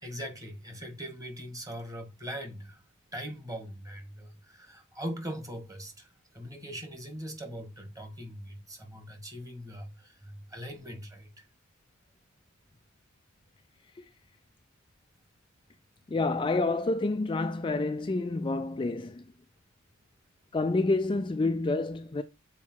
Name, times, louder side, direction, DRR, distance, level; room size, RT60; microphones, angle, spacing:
voice 1, 0.0-2.8 3.1-11.5, equal, 15° right, 1.9 m, -41 dB
voice 2, 16.1-19.2 20.5-22.2, left 3 dB, 25° left, 0.4 m, -28 dB
7.3 x 4.6 x 4.6 m
head